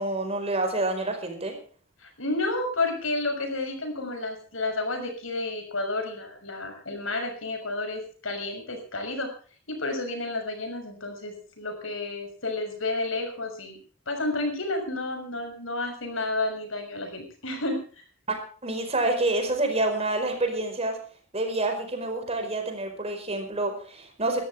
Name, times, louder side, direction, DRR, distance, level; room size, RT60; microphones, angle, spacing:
voice 1, 0.0-1.5 18.6-21.0 21.3-24.4, right 2 dB, 30° right, 5 dB, 4.9 m, -27 dB
voice 2, 2.0-9.3 9.7-13.8 14.1-18.0, left 2 dB, 70° left, 5 dB, 6.2 m, -31 dB
20.5 x 14.0 x 3.6 m, 0.42 s
head